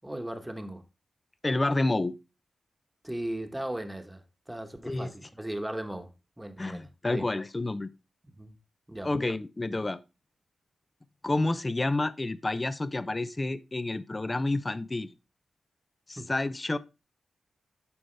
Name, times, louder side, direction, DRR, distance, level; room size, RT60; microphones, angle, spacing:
voice 1, 0.0-0.8 3.0-6.1 6.4-7.3 8.4-8.5 8.9-9.1 16.2-16.3, right 1 dB, 10° right, 1.2 m, -37 dB
voice 2, 1.4-2.1 4.8-5.1 6.6-7.9 9.0-10.0 11.2-15.1 16.1-16.8, left 2 dB, 20° left, 0.5 m, -29 dB
11.5 x 5.1 x 3.3 m
wide cardioid pair, 130°, 0 cm